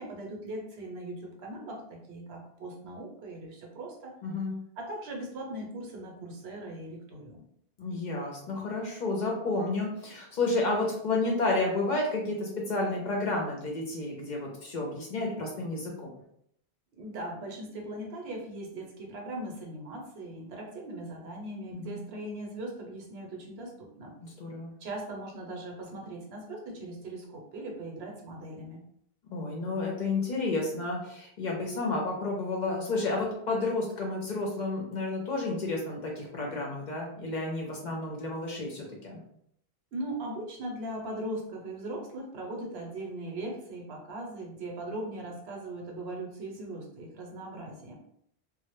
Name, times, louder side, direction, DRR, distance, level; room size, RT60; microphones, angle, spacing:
voice 1, 0.0-4.1 4.8-7.4 17.0-24.1 24.8-28.8 39.9-48.0, right 1 dB, 75° right, 0 dB, 0.9 m, -39 dB
voice 2, 4.2-4.6 7.8-16.1 21.7-22.0 24.2-24.7 29.3-39.2, left 2 dB, 55° left, -1 dB, 0.6 m, -31 dB
2.1 x 2.0 x 2.9 m, 0.71 s
omnidirectional pair, 1.1 m